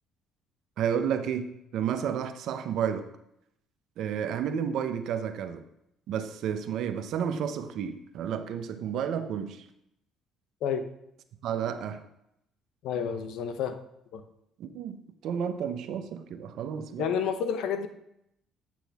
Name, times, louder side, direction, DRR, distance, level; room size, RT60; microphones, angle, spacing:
voice 1, 0.8-3.1 4.0-5.6 6.1-9.6 11.4-12.0 14.6-17.1, right 8 dB, 70° right, 9 dB, 0.7 m, -31 dB
voice 2, 12.8-13.8 14.1-14.2 17.0-17.9, left 7 dB, 75° left, 8 dB, 0.7 m, -29 dB
8.4 x 6.1 x 3.5 m, 0.79 s
supercardioid pair, 80°, 0 cm